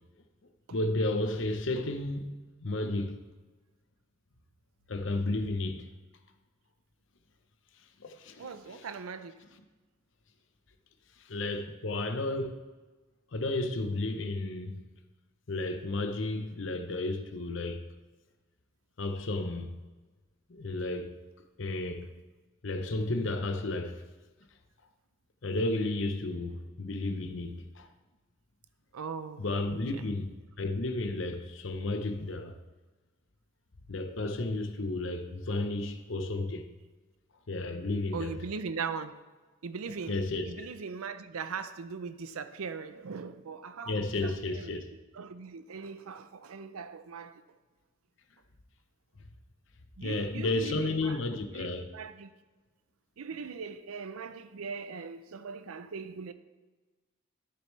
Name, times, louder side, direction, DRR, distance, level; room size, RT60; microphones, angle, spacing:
voice 1, 0.7-3.2 4.9-5.9 8.0-8.9 11.3-12.6 13.3-14.8 15.5-17.8 19.0-19.7 20.5-21.1 21.6-22.1 22.6-24.0 25.4-27.9 29.4-32.6 33.9-36.7 37.5-38.3 40.1-40.7 43.9-44.9 50.0-51.9, left 2 dB, 60° left, 0.7 m, -32 dB
voice 2, 8.4-9.4 28.9-30.0 38.1-39.1 39.6-40.2 40.5-44.9 45.1-47.4 50.0-51.2 51.5-52.3 53.2-56.3, right 5 dB, 90° right, 0.5 m, -40 dB
12.5 x 6.8 x 3.2 m
head